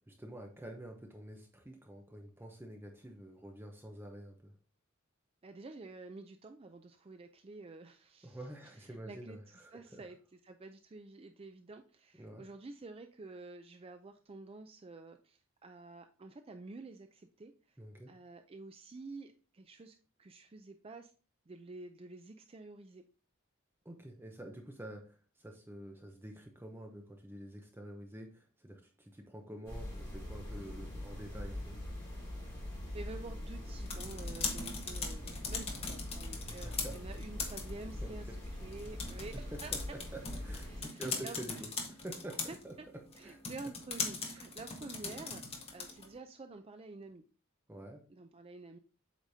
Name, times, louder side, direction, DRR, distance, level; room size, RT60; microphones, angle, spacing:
voice 1, 0.1-4.5 8.2-10.0 12.2-12.5 17.8-18.1 23.8-31.8 36.4-37.0 38.0-38.1 39.5-39.8 40.1-42.4 42.6-42.7 43.2-43.4 44.4-44.5 45.1-45.2 47.7-48.0, right 1 dB, 10° right, 3 dB, 0.8 m, -48 dB
voice 2, 5.4-8.4 8.8-17.8 18.1-21.1 21.5-23.0 32.9-39.7 40.7-41.6 42.5-42.9 43.2-47.2 48.1-48.8, right 3 dB, 25° right, 7 dB, 0.4 m, -49 dB
sound 1, 29.6-40.8, left 1 dB, 15° left, 3.4 m, -43 dB
sound 2, 33.6-46.2, left 4 dB, 30° left, 1.3 m, -41 dB
8.0 x 5.1 x 2.7 m, 0.36 s
head